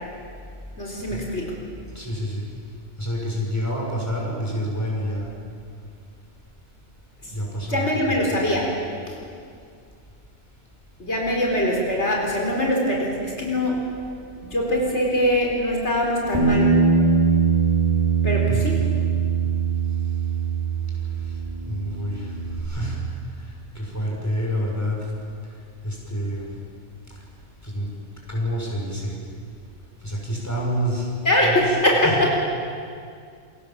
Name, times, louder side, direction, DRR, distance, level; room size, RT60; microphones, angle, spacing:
voice 1, 0.8-1.5 7.7-8.7 9.1-9.2 11.0-13.8 14.4-16.7 18.2-18.8 31.2-32.4, left 1 dB, 70° left, -2 dB, 4.6 m, -22 dB
voice 2, 1.9-2.4 3.0-5.3 7.3-8.5 18.5-18.6 21.6-22.3 22.6-23.0 23.7-25.0 25.8-26.5 27.6-27.9 28.3-29.1 30.0-31.1 31.4-31.6 32.0-32.1, equal, 15° left, -3 dB, 6.9 m, -28 dB
Bass guitar, 16.3-21.1 21.4-22.6, right 5 dB, 25° right, 6.0 m, -21 dB
28.5 x 24.0 x 7.6 m, 2.3 s
omnidirectional pair, 1.2 m